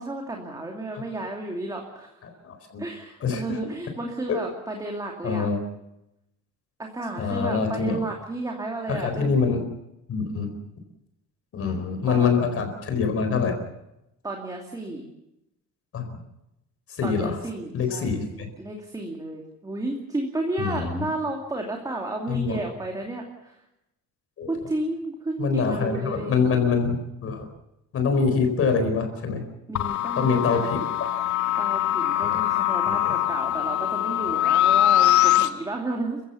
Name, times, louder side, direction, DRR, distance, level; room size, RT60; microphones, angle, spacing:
voice 1, 0.0-2.2 2.8-5.5 6.8-9.3 11.6-12.6 14.2-15.1 17.0-23.6 24.5-26.4 29.7-30.8 31.6-36.2, right 2 dB, 10° right, 1 dB, 2.6 m, -32 dB
voice 2, 2.4-2.8 3.2-3.6 5.2-5.6 7.2-8.0 8.9-9.6 10.1-10.5 11.5-13.6 15.9-16.2 16.9-17.4 17.7-18.5 20.6-21.1 22.3-22.6 24.4-24.5 25.4-27.5 27.9-29.5 30.2-31.1 32.2-32.4 32.9-33.1, left 5 dB, 50° left, 7 dB, 4.6 m, -25 dB
sound 1, 29.8-35.5, left 13 dB, 75° left, 1.8 m, -22 dB
30.0 x 15.5 x 7.1 m, 0.88 s
cardioid pair, 160°, 30 cm